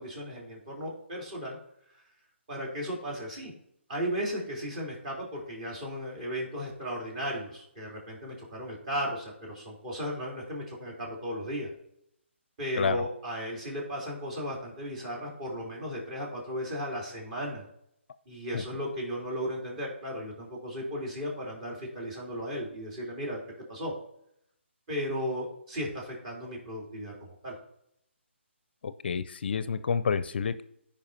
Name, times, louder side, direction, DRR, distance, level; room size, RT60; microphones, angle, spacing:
voice 1, 0.0-1.6 2.5-3.5 3.9-11.7 12.6-17.6 18.2-23.4 23.7-23.9 24.9-27.5, equal, 35° right, -3 dB, 3.5 m, -35 dB
voice 2, 28.8-30.6, left 6 dB, 55° left, 14 dB, 0.5 m, -29 dB
14.5 x 5.1 x 2.8 m, 0.73 s
hypercardioid pair, 150°, 7 cm